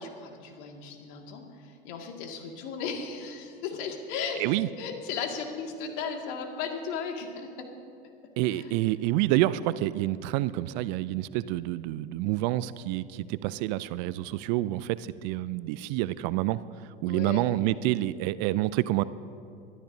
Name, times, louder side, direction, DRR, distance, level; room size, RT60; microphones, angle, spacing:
voice 1, 0.0-1.4 1.8-7.7 8.5-8.7 17.1-17.4, left 5 dB, 55° left, 2 dB, 2.1 m, -36 dB
voice 2, 8.4-16.6 17.0-19.0, right 16 dB, 50° right, 17 dB, 0.4 m, -28 dB
23.0 x 13.0 x 2.7 m, 2.5 s
hypercardioid pair, 90°, 29 cm